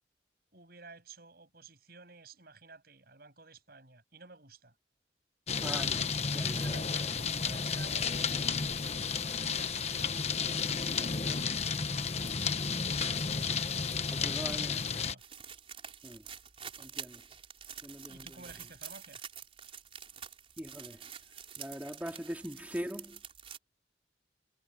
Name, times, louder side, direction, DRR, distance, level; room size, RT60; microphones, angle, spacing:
voice 1, 0.5-4.7 6.3-8.5 9.2-11.5 14.1-15.2 18.0-19.2, right 3 dB, 55° right, 7.3 m, -53 dB
sound 1, 5.5-15.1, left 5 dB, 35° left, 1.1 m, -32 dB
voice 2, 5.6-6.1 6.3-6.6 12.5-12.8 13.4-13.6 14.1-14.8 16.0-16.2 16.8-17.2 17.8-18.3 20.6-21.0 21.6-23.2, equal, 10° right, 3.9 m, -41 dB
sound 2, 15.2-23.6, right 8 dB, 30° right, 4.6 m, -47 dB
head